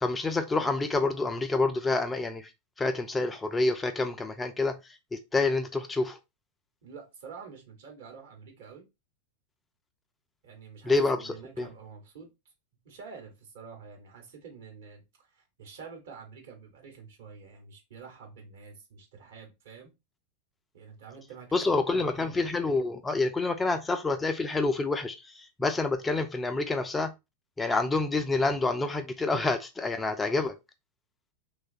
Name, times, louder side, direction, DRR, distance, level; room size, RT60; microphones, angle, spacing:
voice 1, 0.0-2.5 2.8-6.2 10.8-11.7 21.5-27.1 27.6-30.6, left 3 dB, 15° left, 0.3 m, -28 dB
voice 2, 6.8-8.8 10.4-12.3 12.8-19.9 20.7-22.4, right 5 dB, 60° right, 1.1 m, -48 dB
3.1 x 2.2 x 2.6 m
figure-of-eight pair, 90°, 0 cm